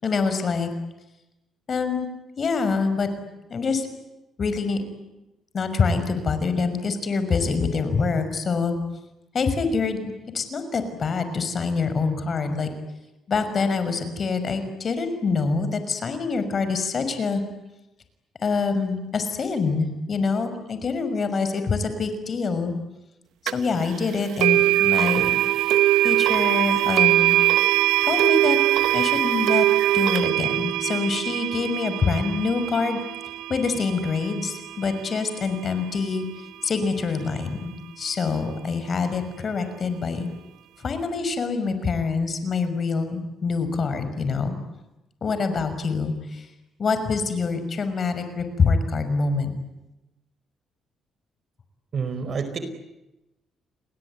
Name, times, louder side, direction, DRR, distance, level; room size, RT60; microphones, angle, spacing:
voice 1, 0.0-0.7 1.7-2.1 2.4-3.1 3.5-3.9 4.4-4.8 5.5-8.8 9.3-12.7 13.3-17.4 18.4-22.7 23.4-25.3 26.0-27.4 28.1-28.6 28.9-29.7 29.9-33.0 33.5-36.3 36.6-40.3 40.8-44.6 45.2-46.5 46.8-49.5, left 4 dB, 45° left, 9 dB, 5.9 m, -25 dB
sound 1, 23.5-23.6 24.4-35.4, right 15 dB, 85° right, 1.0 m, -22 dB
voice 2, 51.9-52.6, right 5 dB, 50° right, 10 dB, 4.9 m, -28 dB
30.0 x 20.5 x 9.7 m, 0.95 s
cardioid pair, 90°, 0 cm